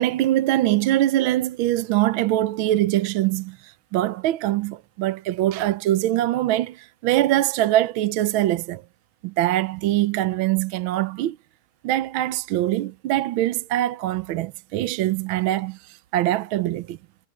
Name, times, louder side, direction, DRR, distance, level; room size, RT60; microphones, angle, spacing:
voice 1, 0.0-8.8 9.2-11.4 11.8-17.0, right 14 dB, 75° right, 1.5 m, -23 dB
omnidirectional pair, 2.3 m